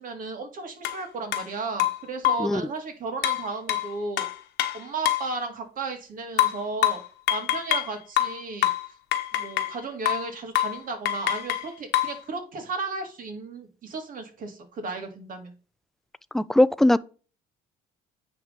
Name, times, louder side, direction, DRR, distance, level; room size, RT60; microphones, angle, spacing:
voice 1, 0.0-4.3 4.7-7.0 7.3-8.7 9.3-15.5, right 3 dB, 55° right, 2.1 m, -34 dB
sound 1, 0.8-1.0 1.3-1.5 1.8-2.5 3.2-5.3 6.4-7.9 8.2-9.8 10.1-10.3 10.5-10.8 11.1-12.2, left 14 dB, 85° left, 1.1 m, -25 dB
voice 2, 16.3-17.0, left 1 dB, ahead, 0.3 m, -19 dB
9.4 x 3.6 x 5.1 m
cardioid pair, 110°, 17 cm